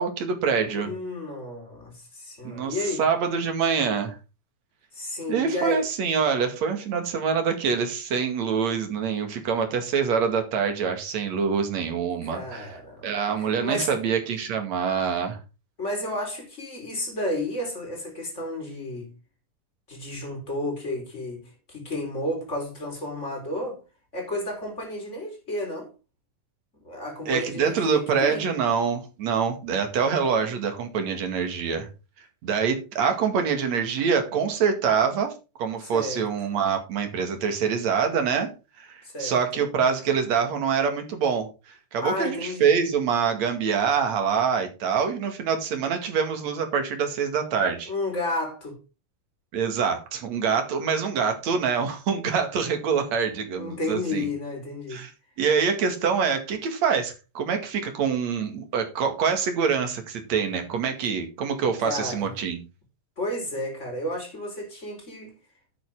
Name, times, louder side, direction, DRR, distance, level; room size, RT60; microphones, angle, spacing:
voice 1, 0.0-0.9 2.4-4.2 5.3-12.8 13.0-15.4 27.3-31.9 32.4-35.3 35.6-38.5 38.8-47.9 49.5-54.3 54.9-55.1 55.4-62.6, right 6 dB, 55° right, 3.1 m, -25 dB
voice 2, 0.7-3.0 4.9-5.9 12.2-13.1 13.4-13.9 15.8-19.1 19.9-23.8 24.1-25.9 26.8-28.5 35.9-36.2 39.0-39.6 42.0-42.7 47.9-48.8 53.6-55.0 61.8-62.3 63.2-65.3, left 1 dB, 20° left, 4.5 m, -32 dB
10.5 x 9.0 x 3.7 m
omnidirectional pair, 4.0 m